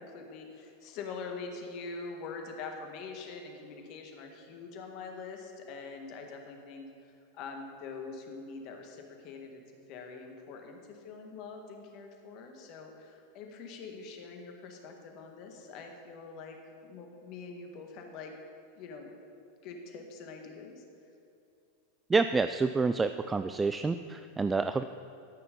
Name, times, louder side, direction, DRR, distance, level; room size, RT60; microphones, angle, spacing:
voice 1, 0.0-18.3 18.8-19.1 19.6-20.8, left 4 dB, 50° left, 3 dB, 1.6 m, -44 dB
voice 2, 22.1-24.8, right 4 dB, 15° right, 10 dB, 0.3 m, -28 dB
13.0 x 5.9 x 5.2 m, 2.7 s
hypercardioid pair, 95°, 0 cm